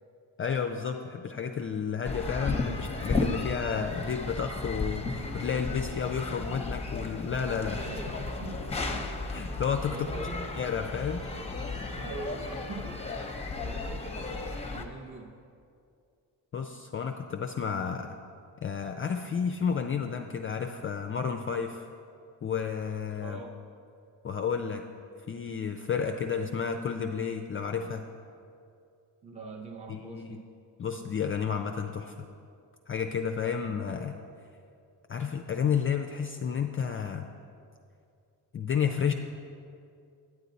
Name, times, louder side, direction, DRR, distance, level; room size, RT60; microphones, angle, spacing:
voice 1, 0.4-7.8 9.3-10.0 10.6-11.4 16.5-18.2 18.6-21.9 22.4-23.4 24.2-24.8 25.3-28.1 29.9-30.4 30.8-32.3 32.9-34.2 35.1-37.3 38.5-39.1, left 6 dB, 35° left, 5 dB, 0.4 m, -31 dB
sound 1, 2.0-14.8, left 3 dB, 15° left, 0.8 m, -34 dB
voice 2, 7.7-9.1 9.9-10.6 12.0-13.1 13.6-15.4 23.2-23.6 29.2-30.5, right 2 dB, 15° right, 2 dB, 0.6 m, -42 dB
9.2 x 8.2 x 4.0 m, 2.4 s
cardioid pair, 95°, 41 cm